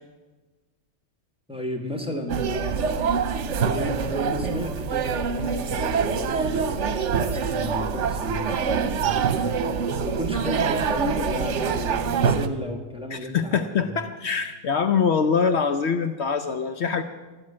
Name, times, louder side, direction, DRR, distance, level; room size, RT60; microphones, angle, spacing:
voice 1, 1.5-2.8 3.6-9.6 10.0-14.0, left 1 dB, 5° right, 3 dB, 1.5 m, -33 dB
sound 1, 2.3-12.5, right 6 dB, 70° right, 1.1 m, -25 dB
voice 2, 13.1-17.0, left 6 dB, 65° left, 9 dB, 0.9 m, -24 dB
12.5 x 9.4 x 8.6 m, 1.2 s
omnidirectional pair, 1.3 m